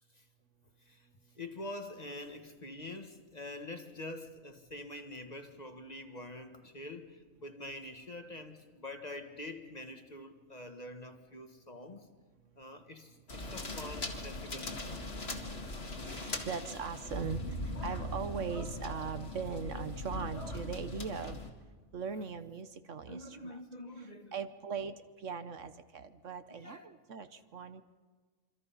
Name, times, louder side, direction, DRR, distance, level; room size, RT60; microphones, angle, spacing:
voice 1, 1.3-12.1 12.5-15.1 17.2-17.4 23.1-24.3 26.5-26.9, left 2 dB, 30° left, 1.5 m, -46 dB
sound 1, 13.3-21.5, left 1 dB, 50° left, 2.3 m, -40 dB
voice 2, 15.5-21.4 21.9-23.6 24.0-27.8, right 6 dB, 65° right, 1.3 m, -40 dB
27.0 x 24.5 x 5.7 m
omnidirectional pair, 1.4 m